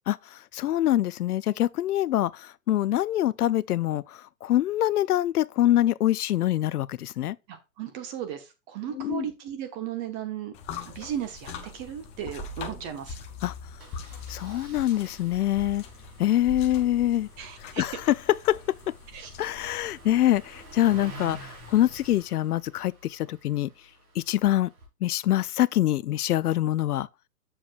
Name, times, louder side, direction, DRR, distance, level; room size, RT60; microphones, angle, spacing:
voice 1, 0.1-7.4 8.9-9.3 13.4-13.5 14.3-15.8 16.2-17.3 17.6-18.6 19.4-23.7 24.2-24.7 25.0-27.1, left 13 dB, 75° left, 0.5 m, -25 dB
voice 2, 7.5-10.5 10.8-13.1 17.4-17.8 19.1-19.3, right 9 dB, 25° right, 1.2 m, -35 dB
sound 1, 10.5-22.2, left 3 dB, 15° left, 0.6 m, -43 dB
Engine starting, 11.9-12.1 12.4-12.5 12.7-12.9 13.8-24.9, right 1 dB, 65° right, 4.2 m, -49 dB
7.2 x 7.0 x 2.4 m
hypercardioid pair, 145°, 46 cm